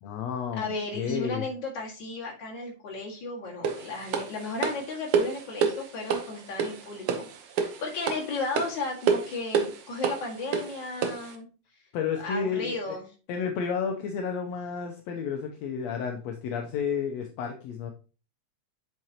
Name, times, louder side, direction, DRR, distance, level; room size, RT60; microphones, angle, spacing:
voice 1, 0.0-1.5 11.9-13.0 13.3-17.9, left 6 dB, 75° left, 3 dB, 1.8 m, -31 dB
voice 2, 0.5-7.3 7.8-11.5 12.1-13.0, left 3 dB, 40° left, -2 dB, 2.2 m, -34 dB
sound 1, 3.6-11.3, right 6 dB, 65° right, 1.4 m, -29 dB
7.8 x 5.8 x 2.8 m, 0.35 s
omnidirectional pair, 3.4 m